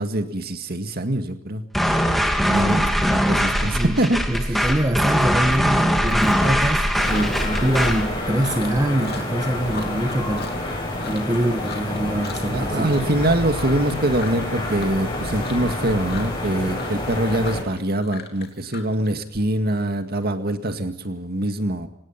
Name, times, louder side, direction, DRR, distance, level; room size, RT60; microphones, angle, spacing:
voice 1, 0.0-1.6 2.5-4.7 6.0-6.2 12.5-21.9, right 1 dB, 50° right, 7 dB, 2.1 m, -24 dB
sound 1, 1.7-8.1, equal, ahead, 2.4 m, -21 dB
voice 2, 3.6-4.0 4.3-13.0, right 1 dB, 20° right, 6 dB, 1.2 m, -24 dB
Chewing mastication, 5.2-5.4 5.7-6.7 7.0-11.3 11.6-12.0 12.2-12.6 12.9-19.4, left 4 dB, 50° left, 2.9 m, -37 dB
sound 2, 6.9-17.6, left 1 dB, 25° left, 7.9 m, -28 dB
25.0 x 19.0 x 5.9 m, 0.76 s
head